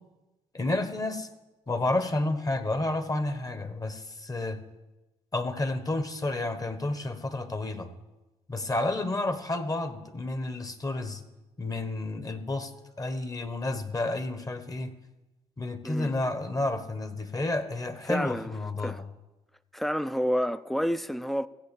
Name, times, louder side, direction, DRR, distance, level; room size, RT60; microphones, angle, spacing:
voice 1, 0.5-1.3 1.7-4.6 5.3-7.9 8.5-11.2 11.6-12.7 13.0-14.9 15.6-19.0, left 2 dB, 25° left, 1.4 m, -30 dB
voice 2, 18.1-18.5 18.8-19.0 19.7-21.5, equal, ahead, 0.5 m, -29 dB
15.5 x 8.0 x 6.9 m
supercardioid pair, 65°, 13 cm